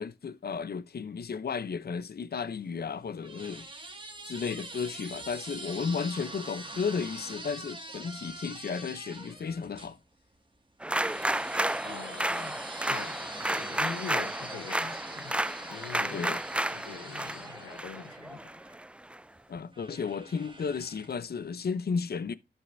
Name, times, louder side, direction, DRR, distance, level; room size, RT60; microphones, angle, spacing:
voice 1, 0.0-3.7 4.2-10.0 16.1-16.4 19.5-22.4, left 5 dB, 50° left, 0.7 m, -34 dB
sound 1, 2.6-9.9 10.9-18.8 19.7-21.3, right 2 dB, 25° right, 2.1 m, -45 dB
sound 2, 10.8-19.2, right 1 dB, 5° right, 0.3 m, -32 dB
voice 2, 11.8-16.3 16.7-18.5, left 7 dB, 85° left, 0.8 m, -43 dB
13.0 x 5.5 x 2.7 m
cardioid pair, 50°, 20 cm